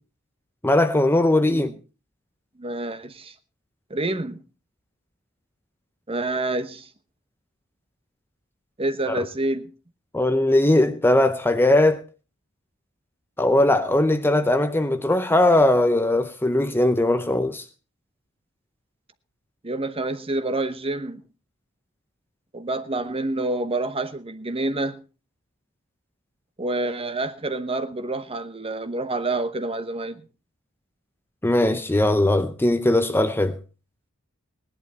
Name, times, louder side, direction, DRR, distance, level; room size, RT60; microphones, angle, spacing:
voice 1, 0.6-1.7 10.1-12.0 13.4-17.6 31.4-33.6, left 1 dB, 10° left, 0.6 m, -19 dB
voice 2, 1.4-1.7 2.6-3.3 3.9-4.4 6.1-6.9 8.8-9.7 19.6-21.2 22.5-25.0 26.6-30.2, right 2 dB, 25° right, 1.0 m, -28 dB
18.0 x 11.0 x 4.2 m
head